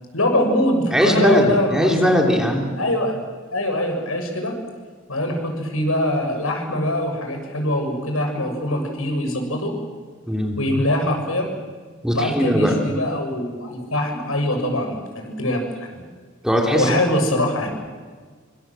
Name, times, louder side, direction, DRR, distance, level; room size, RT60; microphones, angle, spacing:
voice 1, 0.1-2.1 2.8-3.1 3.5-4.6 5.1-9.7 10.6-11.5 12.1-16.0 16.7-17.8, left 1 dB, 85° left, 4 dB, 6.5 m, -23 dB
voice 2, 0.9-2.8 10.3-10.6 12.0-12.7 16.4-17.0, equal, 5° right, 1 dB, 3.3 m, -19 dB
25.0 x 25.0 x 7.6 m, 1.5 s
head